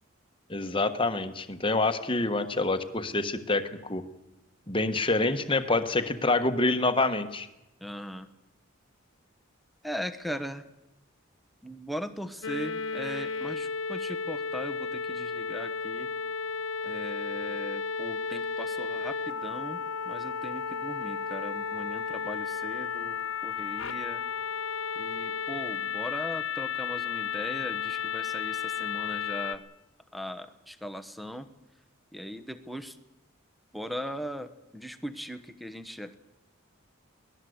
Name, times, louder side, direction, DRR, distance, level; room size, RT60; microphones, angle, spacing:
voice 1, 0.5-4.0 4.7-7.5, left 2 dB, 25° left, 9 dB, 1.3 m, -27 dB
voice 2, 7.8-8.3 9.8-10.7 11.6-16.1 16.8-24.2 24.9-29.6 30.1-31.5 32.1-33.0 33.7-36.2, equal, ahead, 11 dB, 1.0 m, -39 dB
sound 1, 12.4-29.6, left 6 dB, 70° left, 1.1 m, -33 dB
23.0 x 18.0 x 8.0 m, 0.93 s
head